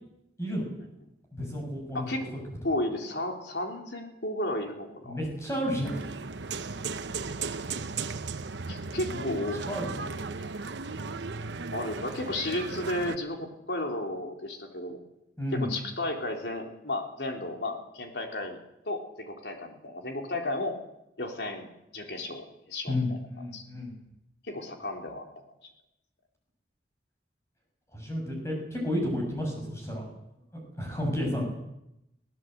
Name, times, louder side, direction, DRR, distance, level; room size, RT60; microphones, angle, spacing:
voice 1, 1.3-2.1 2.3-2.4 5.0-6.0 8.9-9.3 9.7-9.9 15.4-15.7 22.9-24.0 27.9-30.1 30.8-31.4, left 1 dB, 15° left, 1 dB, 7.5 m, -31 dB
voice 2, 2.6-5.2 8.7-10.3 11.7-15.0 15.5-18.6 18.8-20.7 21.2-23.0 23.5-23.6 24.5-25.2, left 1 dB, 75° left, 3 dB, 3.4 m, -33 dB
sound 1, 5.8-13.2, right 4 dB, 85° right, 0.9 m, -36 dB
23.0 x 17.0 x 8.0 m, 0.86 s
head